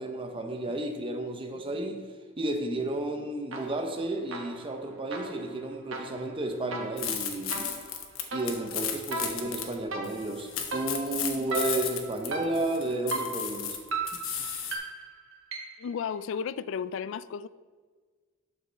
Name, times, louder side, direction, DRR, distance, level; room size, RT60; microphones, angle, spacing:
voice 1, 0.0-2.0 2.4-7.7 8.3-13.8, right 2 dB, 25° right, 4 dB, 0.7 m, -32 dB
sound 1, 3.5-4.0 4.3-15.9, right 3 dB, 80° right, 1.3 m, -38 dB
sound 2, 7.0-9.7 10.0-14.7, left 8 dB, 80° left, 1.0 m, -34 dB
voice 2, 15.8-17.5, left 7 dB, 65° left, 17 dB, 0.3 m, -33 dB
12.0 x 5.3 x 3.3 m, 1.5 s
head